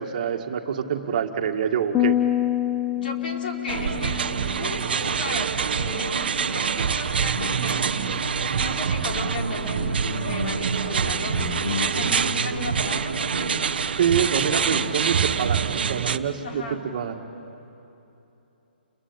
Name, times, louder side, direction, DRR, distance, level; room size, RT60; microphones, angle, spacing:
voice 1, 0.0-2.2 14.0-16.6 16.9-17.2, right 8 dB, 45° right, 4 dB, 2.1 m, -26 dB
sound 1, 1.9-5.4, left 13 dB, 15° left, 0.8 m, -26 dB
voice 2, 2.9-8.1 8.4-13.5 16.4-16.8, left 2 dB, 60° left, 1 dB, 4.7 m, -35 dB
sound 2, 3.7-16.2, right 7 dB, 65° right, 1.1 m, -26 dB
Guitar, 6.7-15.2, left 2 dB, 80° left, 5.4 m, -35 dB
29.5 x 22.5 x 8.9 m, 3.0 s
hypercardioid pair, 140°, 6 cm